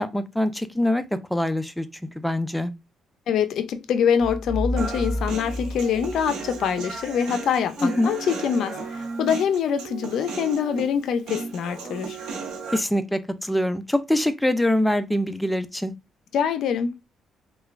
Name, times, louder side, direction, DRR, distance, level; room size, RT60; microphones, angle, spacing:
voice 1, 0.0-2.7 7.8-8.1 12.7-15.9, left 1 dB, 5° left, 0.3 m, -24 dB
voice 2, 3.3-12.2 16.3-16.9, left 7 dB, 75° left, 0.4 m, -24 dB
sound 1, 4.2-7.1, left 1 dB, 25° left, 1.7 m, -31 dB
Human voice, 4.8-12.8, right 4 dB, 90° right, 0.8 m, -35 dB
3.1 x 2.2 x 2.3 m
cardioid pair, 90°, 0 cm